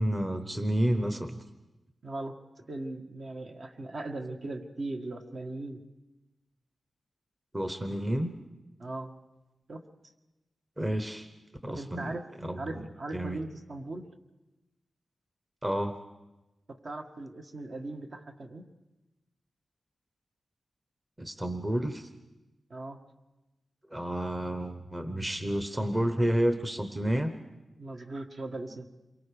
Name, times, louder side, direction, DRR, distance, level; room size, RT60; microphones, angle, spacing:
voice 1, 0.0-1.4 7.5-8.4 10.8-11.3 11.6-12.9 13.1-13.4 15.6-16.0 21.2-22.1 23.9-27.3, right 1 dB, 15° right, 8 dB, 1.0 m, -30 dB
voice 2, 2.0-2.4 2.7-5.8 8.8-9.1 9.7-9.8 11.7-12.3 12.6-14.1 16.7-18.7 22.7-23.0 27.8-28.8, right 2 dB, 55° right, 4 dB, 1.8 m, -39 dB
28.0 x 23.5 x 5.1 m, 1.0 s
wide cardioid pair, 130°, 0 cm